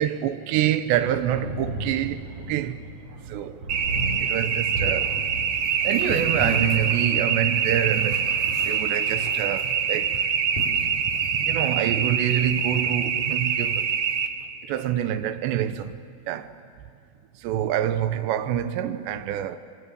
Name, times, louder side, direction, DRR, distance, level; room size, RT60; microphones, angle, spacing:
voice 1, 0.0-2.8 3.2-3.6 4.2-5.3 5.8-10.3 11.5-13.9 14.6-16.0 16.3-16.6 17.4-19.6, right 11 dB, 85° right, 3.1 m, -26 dB
sound 1, 1.3-10.2, right 1 dB, 40° right, 5.7 m, -37 dB
sound 2, 3.7-14.3, right 7 dB, 65° right, 1.6 m, -25 dB
sound 3, 5.6-11.4, left 1 dB, 55° left, 6.5 m, -37 dB
26.0 x 25.5 x 8.7 m
omnidirectional pair, 5.0 m